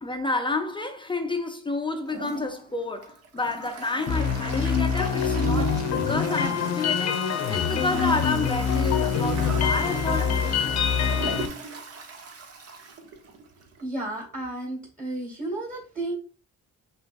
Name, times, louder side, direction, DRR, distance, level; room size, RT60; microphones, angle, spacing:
voice 1, 0.0-7.2 7.5-10.6, left 2 dB, 15° left, 0.6 m, -30 dB
Toilet flush, 2.0-13.8, right 4 dB, 50° right, 1.0 m, -39 dB
sound 1, 4.1-11.5, left 6 dB, 60° left, 0.8 m, -25 dB
voice 2, 13.8-16.1, right 2 dB, 25° right, 2.1 m, -32 dB
5.6 x 3.1 x 2.6 m
cardioid pair, 90°, 30 cm